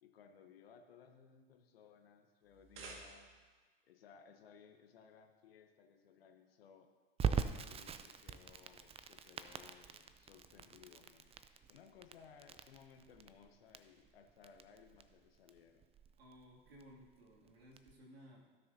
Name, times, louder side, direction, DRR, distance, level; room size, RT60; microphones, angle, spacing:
voice 1, 0.0-3.3 3.8-6.9 7.5-11.3 11.7-15.9, left 7 dB, 80° left, 5 dB, 1.0 m, -61 dB
sound 1, 2.4-3.6, right 3 dB, 45° right, 1.9 m, -53 dB
Crackle, 7.2-17.9, right 6 dB, 20° right, 0.5 m, -43 dB
voice 2, 16.2-18.5, equal, 85° right, -3 dB, 2.5 m, -59 dB
16.5 x 6.7 x 2.7 m, 1.4 s
hypercardioid pair, 85°, 30 cm